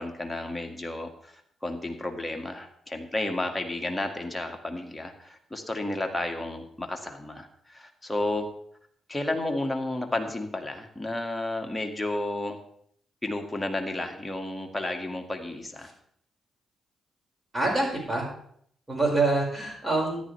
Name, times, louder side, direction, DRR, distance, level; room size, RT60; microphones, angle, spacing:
voice 1, 0.0-8.5 9.1-12.6 13.2-15.9, left 2 dB, 10° left, 3 dB, 2.1 m, -32 dB
voice 2, 17.5-18.3 18.9-20.2, right 2 dB, 20° right, -1 dB, 5.5 m, -25 dB
13.5 x 10.5 x 3.4 m, 0.66 s
hypercardioid pair, 45°, 0 cm